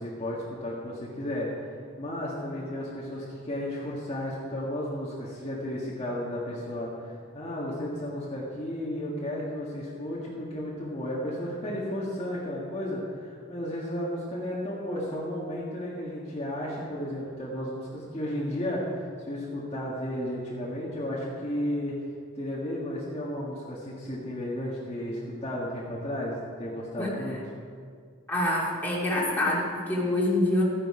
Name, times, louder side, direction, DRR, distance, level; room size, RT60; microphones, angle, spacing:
voice 1, 0.0-1.7 2.0-21.9 22.3-27.4, left 1 dB, 30° left, -6 dB, 1.6 m, -33 dB
voice 2, 28.3-30.6, left 1 dB, 10° left, -5 dB, 2.4 m, -26 dB
13.5 x 9.9 x 4.9 m, 2.2 s
head